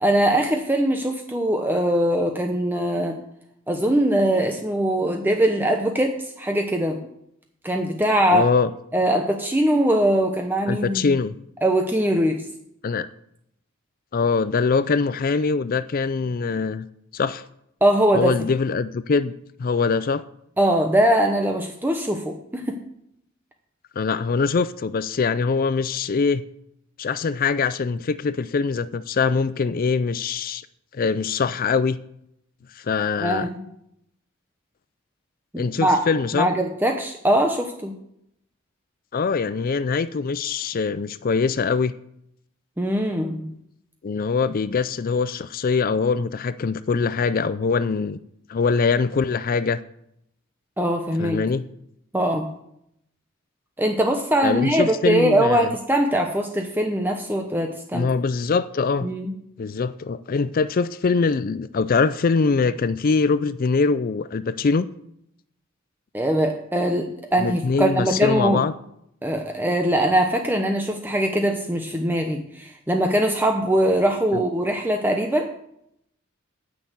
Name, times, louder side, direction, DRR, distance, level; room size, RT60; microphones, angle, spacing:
voice 1, 0.0-3.2 3.7-7.0 7.6-8.5 8.9-11.2 11.6-12.4 17.8-18.4 20.6-22.8 33.2-33.6 35.5-36.0 36.3-38.0 42.8-43.5 50.8-51.4 52.1-52.5 53.8-58.1 59.0-59.3 66.1-68.6 69.2-75.5, right 1 dB, 10° right, 0.8 m, -21 dB
voice 2, 8.3-8.7 10.7-11.4 12.8-13.1 14.1-16.9 17.1-17.4 18.1-19.3 19.6-20.2 24.0-26.4 27.0-30.6 30.9-32.0 32.8-33.5 35.6-36.5 39.1-41.9 44.0-48.2 48.5-49.8 51.2-51.6 54.4-55.7 57.9-59.1 59.6-64.9 67.4-68.7 74.3-74.4, left 4 dB, 45° left, 0.4 m, -23 dB
9.4 x 6.6 x 8.2 m
head